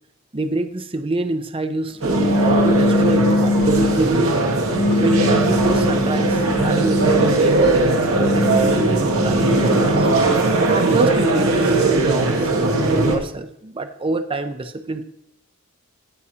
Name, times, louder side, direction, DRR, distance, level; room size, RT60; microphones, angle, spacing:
voice 1, 0.3-4.3 4.9-10.1 10.8-15.0, right 2 dB, 25° right, 8 dB, 0.6 m, -27 dB
sound 1, 2.0-13.2, right 2 dB, 85° right, 1.7 m, -19 dB
sound 2, 2.1-4.1 4.7-7.4 8.0-10.3, left 2 dB, 25° left, 0.5 m, -22 dB
18.0 x 6.4 x 2.8 m, 0.79 s
head